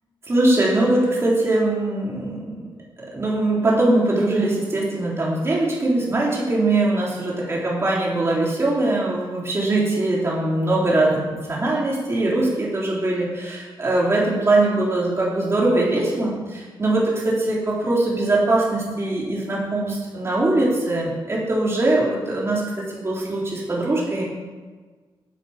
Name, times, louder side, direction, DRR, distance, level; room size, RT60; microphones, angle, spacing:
voice 1, 0.3-2.7 3.1-24.2, right 2 dB, 30° right, -5 dB, 3.7 m, -21 dB
10.5 x 8.3 x 7.4 m, 1.4 s
wide cardioid pair, 115°, 9 cm